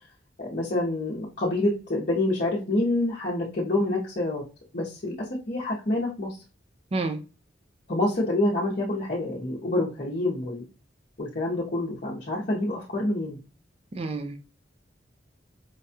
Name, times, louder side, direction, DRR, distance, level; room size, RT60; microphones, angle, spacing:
voice 1, 0.4-4.4 4.7-6.4 7.9-10.7 11.2-13.4, left 2 dB, 45° left, 0.9 m, -27 dB
voice 2, 14.0-14.5, right 3 dB, 30° right, 0.5 m, -29 dB
4.7 x 2.3 x 2.7 m
head